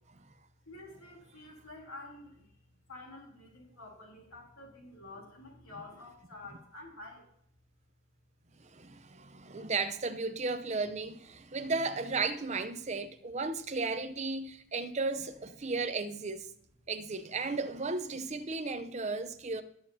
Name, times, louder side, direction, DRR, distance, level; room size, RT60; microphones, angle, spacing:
voice 1, 0.6-7.3, left 2 dB, 75° left, 3.4 m, -49 dB
voice 2, 8.6-16.5 16.9-19.6, right 3 dB, 30° right, 0.6 m, -35 dB
18.0 x 7.2 x 2.8 m
head